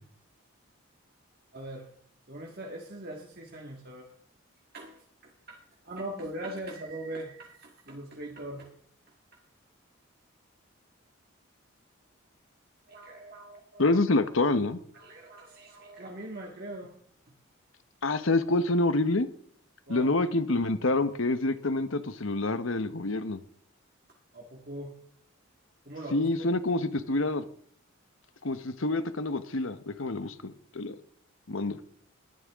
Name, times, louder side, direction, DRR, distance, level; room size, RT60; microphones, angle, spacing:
voice 1, 1.5-1.9 2.3-4.1 4.7-5.6 5.8-8.7 12.9-14.0 14.9-16.9 19.9-20.1 24.3-24.9 25.9-26.5, right 1 dB, 45° right, 0 dB, 1.8 m, -41 dB
voice 2, 13.8-14.8 18.0-19.3 19.9-23.4 26.1-27.4 28.4-30.9 31.5-31.8, left 2 dB, 70° left, 12 dB, 1.0 m, -27 dB
19.5 x 11.5 x 3.6 m, 0.63 s
head